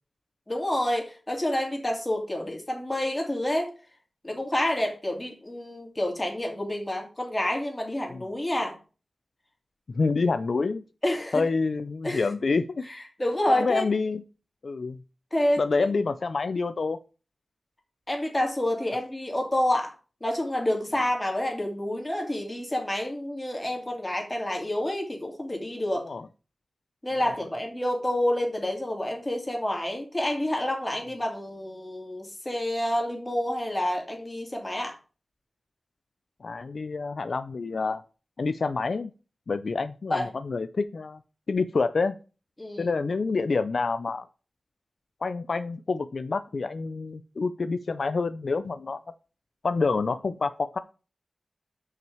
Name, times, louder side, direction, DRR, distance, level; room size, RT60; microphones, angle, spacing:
voice 1, 0.5-3.7 4.2-8.8 11.0-11.4 12.0-12.3 12.9-13.8 15.3-15.6 18.1-19.9 20.2-26.1 27.0-34.9 40.1-40.3 42.6-42.9, left 1 dB, 20° left, 2 dB, 2.7 m, -28 dB
voice 2, 9.9-10.8 11.3-12.8 13.5-14.2 14.6-15.0 15.6-17.0 26.0-26.2 36.4-38.0 38.4-39.1 39.5-41.2 41.5-42.2 42.8-44.3 45.2-49.0 49.6-50.8, left 4 dB, 65° left, 12 dB, 0.4 m, -27 dB
6.2 x 5.8 x 7.0 m, 0.35 s
wide cardioid pair, 100°, 0 cm